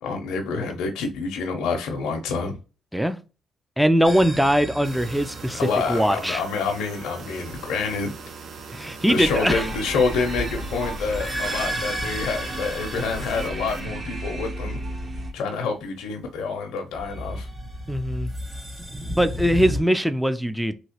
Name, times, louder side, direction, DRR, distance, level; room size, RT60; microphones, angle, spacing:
voice 1, 0.0-2.6 5.5-8.1 9.1-14.8 15.3-17.5, left 4 dB, 85° left, 0.6 m, -27 dB
voice 2, 3.8-5.6 5.9-6.4 8.7-9.7 17.9-18.3 19.2-20.7, equal, ahead, 0.3 m, -21 dB
sound 1, 4.0-6.0 9.9-14.4 16.9-19.8, equal, 20° right, 1.1 m, -34 dB
sound 2, 4.8-13.9, right 5 dB, 60° right, 0.5 m, -40 dB
sound 3, 9.2-15.3, right 1 dB, 35° right, 0.8 m, -33 dB
3.1 x 2.9 x 2.8 m
cardioid pair, 90°, 0 cm